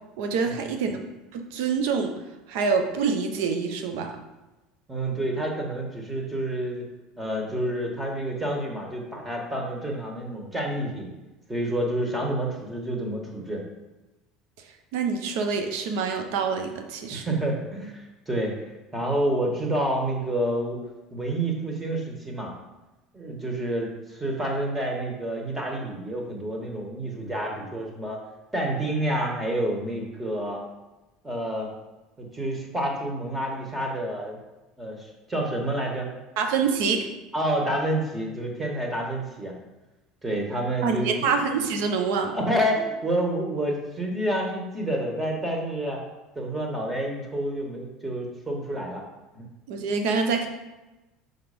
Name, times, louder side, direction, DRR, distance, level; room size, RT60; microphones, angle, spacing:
voice 1, 0.2-1.0 1.3-2.1 2.5-4.2 14.9-17.3 36.4-37.1 40.8-42.4 49.7-50.5, right 5 dB, 70° right, 5 dB, 0.9 m, -26 dB
voice 2, 4.9-6.8 7.2-11.1 11.5-13.6 17.1-18.7 18.9-20.8 21.1-22.5 23.1-28.2 28.5-30.6 31.2-31.7 32.2-34.4 34.8-36.1 37.3-39.5 40.2-41.3 42.2-46.0 46.4-49.0 49.3-49.5, right 1 dB, 15° right, 0 dB, 1.8 m, -28 dB
6.0 x 4.1 x 5.2 m, 1.1 s
hypercardioid pair, 75°, 0 cm